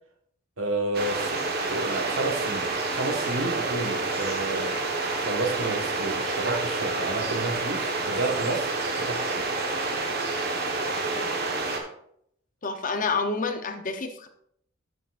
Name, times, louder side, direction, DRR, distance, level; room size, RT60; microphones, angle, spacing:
voice 1, 0.6-9.5, right 2 dB, 85° right, 3 dB, 1.5 m, -31 dB
sound 1, 0.9-11.8, right 3 dB, 50° right, 1.3 m, -28 dB
voice 2, 10.9-11.3 12.6-14.3, left 4 dB, 40° left, 7 dB, 0.8 m, -29 dB
12.5 x 6.6 x 2.5 m, 0.70 s
head